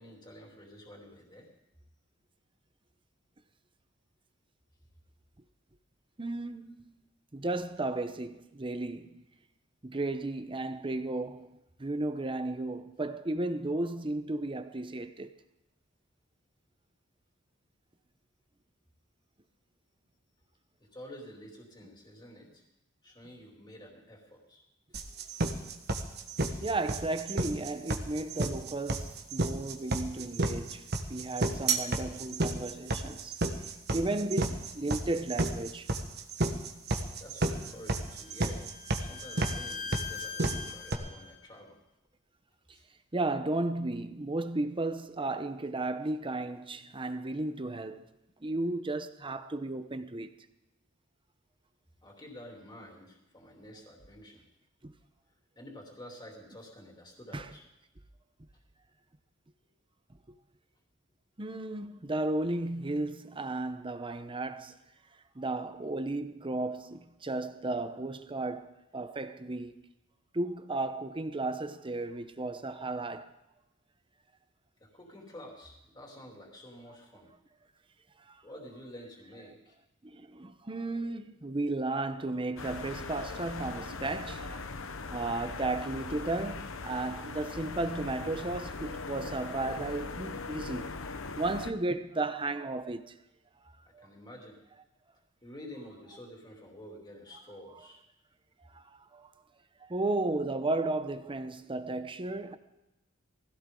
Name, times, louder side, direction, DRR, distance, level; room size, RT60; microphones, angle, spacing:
voice 1, 0.0-1.5 20.9-22.6 23.0-24.6 24.9-26.0 26.5-26.7 37.2-38.7 39.0-41.8 42.7-42.8 52.0-54.4 55.5-57.6 74.8-77.3 78.4-79.7 93.8-94.6 95.4-98.0, equal, 20° left, 3.1 m, -49 dB
voice 2, 6.2-7.0 7.3-9.2 9.8-15.3 26.6-33.4 33.9-35.9 43.1-48.1 48.4-50.4 54.8-54.9 57.3-57.5 60.3-60.4 61.4-64.8 65.4-69.8 70.3-73.4 78.3-78.4 80.0-84.7 85.1-93.1 93.9-94.1 97.7-97.9 98.7-99.3 99.9-102.6, right 2 dB, 25° right, 0.8 m, -34 dB
sound 1, 24.9-40.9, right 2 dB, 50° right, 1.4 m, -31 dB
Bowed string instrument, 37.6-41.4, left 6 dB, 50° left, 1.6 m, -42 dB
sound 2, 82.6-91.7, left 3 dB, 65° left, 0.9 m, -40 dB
20.5 x 16.0 x 3.8 m
head